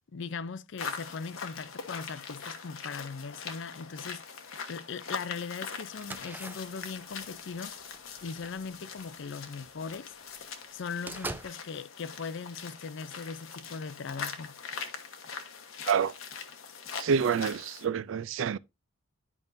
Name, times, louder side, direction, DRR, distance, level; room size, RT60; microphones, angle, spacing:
voice 1, 0.1-7.8 8.2-10.1 10.7-14.6, left 5 dB, 60° left, 0.5 m, -39 dB
sound 1, 0.8-17.9, left 5 dB, 80° left, 1.1 m, -42 dB
sound 2, 6.0-9.8 10.2-10.3 10.6-11.5, right 2 dB, 10° right, 0.5 m, -44 dB
voice 2, 17.0-18.6, right 6 dB, 70° right, 0.4 m, -27 dB
11.0 x 5.3 x 2.6 m
head